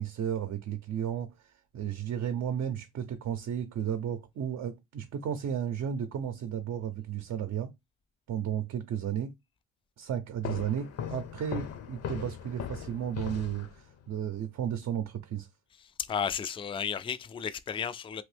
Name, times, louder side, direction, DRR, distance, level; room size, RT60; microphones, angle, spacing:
voice 1, 0.0-7.7 8.3-9.3 10.0-15.5, right 9 dB, 60° right, 0.6 m, -33 dB
sound 1, 10.4-14.1, left 8 dB, 55° left, 0.7 m, -39 dB
voice 2, 15.8-18.2, left 7 dB, 20° left, 0.3 m, -33 dB
3.0 x 2.6 x 3.3 m
cardioid pair, 90°, 30 cm